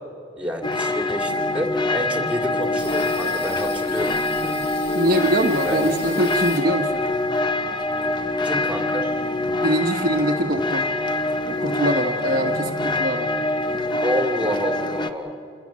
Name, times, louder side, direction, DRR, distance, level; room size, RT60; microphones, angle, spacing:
voice 1, 0.4-4.1 5.6-5.8 8.4-9.1 14.0-15.3, equal, 5° right, 4 dB, 2.4 m, -28 dB
sound 1, 0.6-15.1, left 2 dB, 25° left, 0.9 m, -25 dB
sound 2, 2.8-7.1 7.5-8.8 9.1-9.2 9.5-10.2, left 4 dB, 55° left, 2.6 m, -40 dB
voice 2, 4.4-7.0 9.6-10.9 11.5-13.3, right 1 dB, 45° right, 2 dB, 1.3 m, -23 dB
28.0 x 20.5 x 7.5 m, 2.7 s
head